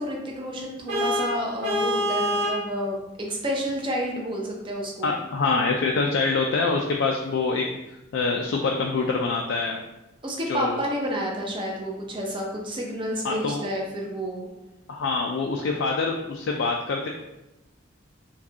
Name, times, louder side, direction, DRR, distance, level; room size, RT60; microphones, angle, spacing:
voice 1, 0.0-5.1 10.2-14.5, equal, 25° right, -1 dB, 0.6 m, -30 dB
Vehicle horn car horn honking, 0.9-2.6, equal, 65° right, 1.3 m, -25 dB
voice 2, 5.0-7.7 8.1-9.8 10.5-10.8 13.2-13.7 14.9-17.1, left 4 dB, 65° left, 0 dB, 0.3 m, -25 dB
4.7 x 2.3 x 2.7 m, 0.98 s
head